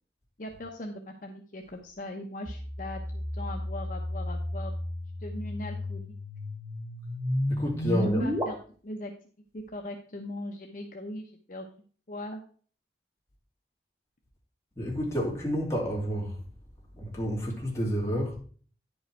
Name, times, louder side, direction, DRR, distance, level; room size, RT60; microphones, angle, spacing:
voice 1, 0.4-4.7 5.2-6.2 8.0-8.6 8.8-9.1 9.5-11.7 12.1-12.4, left 1 dB, 50° left, 0.8 m, -40 dB
sound 1, 2.5-8.4, left 1 dB, 20° right, 1.7 m, -32 dB
voice 2, 7.5-8.3 14.8-16.4 16.9-18.4, equal, 15° left, 2.6 m, -30 dB
10.0 x 5.4 x 4.5 m
head